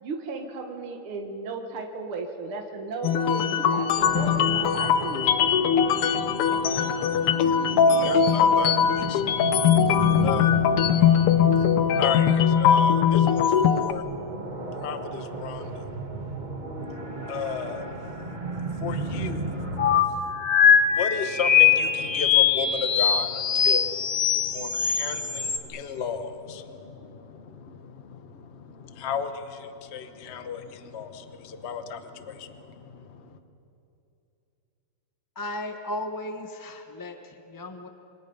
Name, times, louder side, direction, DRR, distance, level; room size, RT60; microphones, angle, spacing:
voice 1, 0.0-5.5, right 4 dB, 75° right, 3 dB, 2.4 m, -35 dB
sound 1, 3.0-13.9, left 7 dB, 85° left, 1.8 m, -21 dB
sound 2, 4.0-20.0, right 2 dB, 25° right, 1.2 m, -34 dB
voice 2, 7.1-10.5 11.0-16.2 16.5-16.8 17.2-33.4, left 6 dB, 40° left, 8 dB, 1.1 m, -35 dB
sound 3, 19.8-25.6, left 7 dB, 70° left, 2.2 m, -21 dB
voice 3, 35.3-37.9, left 1 dB, 15° left, 6 dB, 0.7 m, -35 dB
27.5 x 26.0 x 5.4 m, 2.8 s
omnidirectional pair, 2.4 m